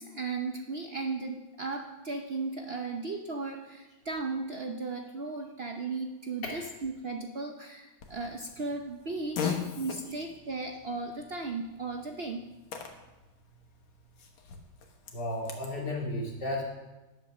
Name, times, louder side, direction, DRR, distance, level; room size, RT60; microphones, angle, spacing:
voice 1, 0.0-12.5, right 3 dB, 80° right, 3 dB, 0.5 m, -36 dB
Fart, 8.0-15.7, left 6 dB, 85° left, 2.1 m, -41 dB
voice 2, 15.1-16.6, left 1 dB, 55° left, -2 dB, 3.0 m, -33 dB
10.5 x 8.0 x 6.4 m, 1.1 s
omnidirectional pair, 2.2 m